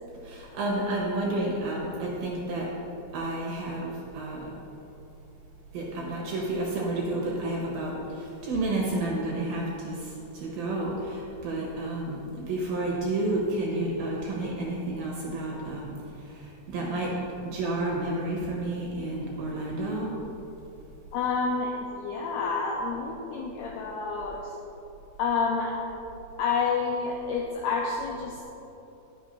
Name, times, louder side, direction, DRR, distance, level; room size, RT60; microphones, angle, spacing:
voice 1, 0.2-2.7 3.1-4.5 5.7-17.1 17.4-20.2, right 2 dB, 65° right, -3 dB, 2.5 m, -31 dB
voice 2, 21.1-24.5 25.2-25.8 26.4-28.4, left 4 dB, 80° left, -2 dB, 2.4 m, -29 dB
11.0 x 6.7 x 5.4 m, 2.9 s
omnidirectional pair, 5.5 m